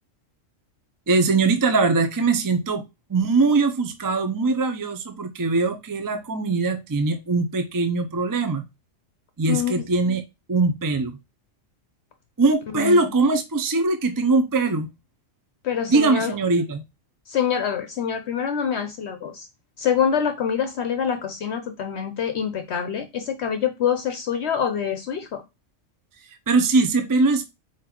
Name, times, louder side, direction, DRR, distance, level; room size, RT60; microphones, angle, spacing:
voice 1, 1.1-2.8 3.1-8.6 9.4-10.2 10.5-11.2 12.4-14.9 15.9-16.8 26.2-27.5, right 3 dB, 30° right, 8 dB, 0.4 m, -21 dB
voice 2, 9.5-9.8 12.7-13.0 15.6-16.3 17.3-19.5 19.8-25.4, left 8 dB, 65° left, 7 dB, 0.9 m, -25 dB
4.7 x 3.9 x 2.9 m, 0.23 s
omnidirectional pair, 1.3 m